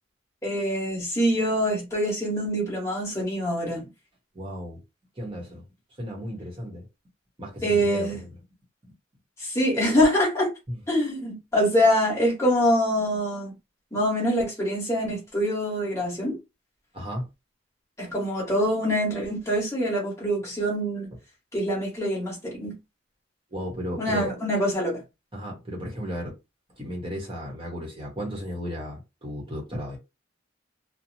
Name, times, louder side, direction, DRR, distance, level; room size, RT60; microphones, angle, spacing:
voice 1, 0.4-3.8 7.6-8.2 9.4-10.5 10.9-13.5 13.9-16.4 18.0-21.1 21.5-22.7 24.0-25.0, equal, 15° left, 1.3 m, -24 dB
voice 2, 4.3-4.8 5.2-5.7 6.0-6.8 7.4-8.3 10.7-10.8 16.9-17.3 23.5-24.4 25.3-26.3 26.8-30.0, equal, 25° right, 1.0 m, -34 dB
2.8 x 2.1 x 2.7 m
head